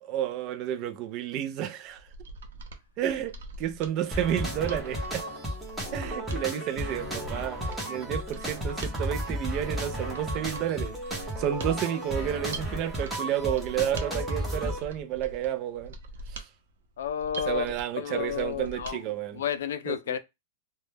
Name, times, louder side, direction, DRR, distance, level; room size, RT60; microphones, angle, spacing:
voice 1, 0.0-2.0 3.0-5.3 5.9-15.9 16.3-16.5 17.4-19.4 19.9-20.2, right 11 dB, 30° right, 0.3 m, -31 dB
Mechanisms, 1.9-19.0 19.3-19.4, right 2 dB, 85° right, 0.5 m, -44 dB
sound 1, 4.1-14.8, equal, 5° right, 0.7 m, -33 dB
voice 2, 17.0-19.0 19.3-20.2, left 8 dB, 75° left, 0.3 m, -31 dB
2.1 x 2.0 x 3.2 m
supercardioid pair, 165°, 0 cm